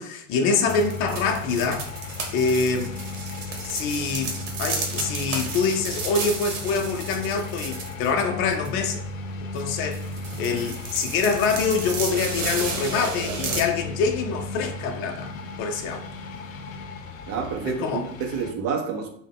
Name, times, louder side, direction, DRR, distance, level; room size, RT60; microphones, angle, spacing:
voice 1, 0.0-1.9 2.3-2.9 3.6-4.3 4.6-9.1 9.5-10.0 10.4-15.3 15.6-16.0 17.7-18.1, left 5 dB, 35° left, 0.5 m, -25 dB
sound 1, 0.7-18.5, left 3 dB, 85° left, 0.6 m, -35 dB
sound 2, 0.7-8.2 8.5-8.7 9.6-9.7 9.9-13.6, right 4 dB, 65° right, 1.0 m, -33 dB
voice 2, 17.3-19.1, right 6 dB, 35° right, 0.7 m, -29 dB
3.5 x 2.2 x 3.5 m
hypercardioid pair, 100°, 39 cm